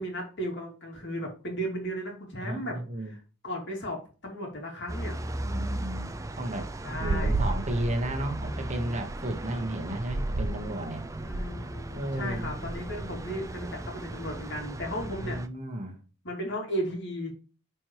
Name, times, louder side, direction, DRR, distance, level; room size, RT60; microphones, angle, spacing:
voice 1, 0.0-2.8 3.1-3.2 3.4-5.2 6.8-7.4 11.2-15.4 16.2-17.3, equal, 55° left, 0 dB, 2.7 m, -35 dB
voice 2, 2.4-3.1 5.4-6.1 6.4-11.0 11.9-12.5 15.2-16.0, right 1 dB, 35° right, 4 dB, 1.2 m, -33 dB
sound 1, 4.9-15.5, right 1 dB, 15° right, 0.4 m, -37 dB
sound 2, 7.0-9.2 10.0-10.7 11.0-11.6 12.1-12.7, right 2 dB, 60° right, 0.6 m, -31 dB
9.6 x 4.5 x 3.0 m, 0.35 s
head